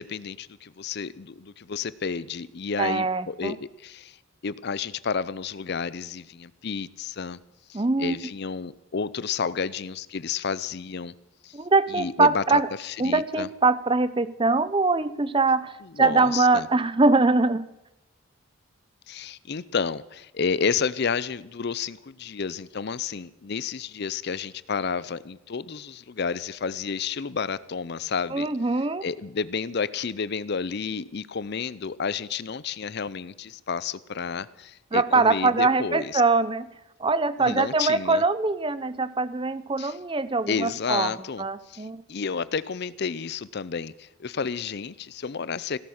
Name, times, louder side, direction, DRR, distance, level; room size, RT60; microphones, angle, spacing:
voice 1, 0.0-4.2 4.4-7.4 7.7-11.1 11.4-11.6 11.9-13.5 15.8-16.7 19.1-28.5 29.0-36.2 37.5-38.2 39.8-40.0 40.5-45.8, left 5 dB, 50° left, 18 dB, 0.5 m, -31 dB
voice 2, 2.8-3.6 7.7-8.2 11.5-12.7 13.0-17.7 28.3-29.0 34.9-36.7 37.0-41.1 41.4-42.0, right 3 dB, 25° right, 15 dB, 0.6 m, -23 dB
17.0 x 11.5 x 6.4 m, 0.91 s
head